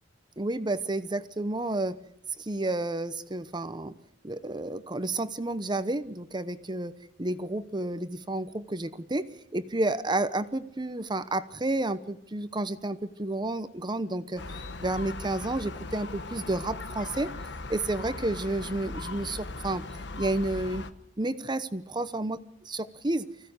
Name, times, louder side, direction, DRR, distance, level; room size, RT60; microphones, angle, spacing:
voice 1, 0.4-2.0 2.4-3.9 4.2-6.9 7.2-9.3 9.5-14.4 14.8-17.3 17.7-19.8 20.2-20.8 21.2-22.4 22.7-23.3, right 2 dB, 25° right, 12 dB, 0.9 m, -30 dB
Gull seagull, 14.4-20.9, left 3 dB, 65° left, 1.3 m, -39 dB
25.0 x 16.0 x 8.1 m, 0.73 s
head